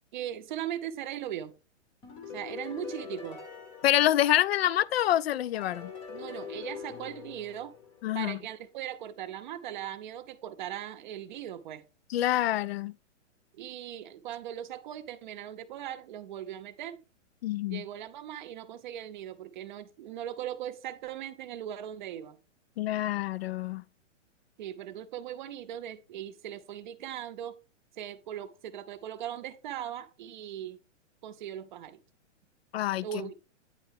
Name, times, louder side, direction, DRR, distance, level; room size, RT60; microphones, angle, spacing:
voice 1, 0.1-1.5 2.3-3.4 6.1-7.7 8.1-11.8 13.6-17.0 17.7-22.4 24.6-27.6 28.0-30.8 31.2-32.0 33.0-33.5, right 11 dB, 40° right, 0.6 m, -39 dB
sound 1, 2.0-4.9 5.5-8.4, left 6 dB, 15° left, 0.7 m, -43 dB
voice 2, 3.8-5.9 8.0-8.4 12.1-12.9 17.4-17.8 22.8-23.8 32.7-33.3, left 13 dB, 55° left, 0.4 m, -27 dB
9.0 x 4.5 x 3.4 m
hypercardioid pair, 155°, 37 cm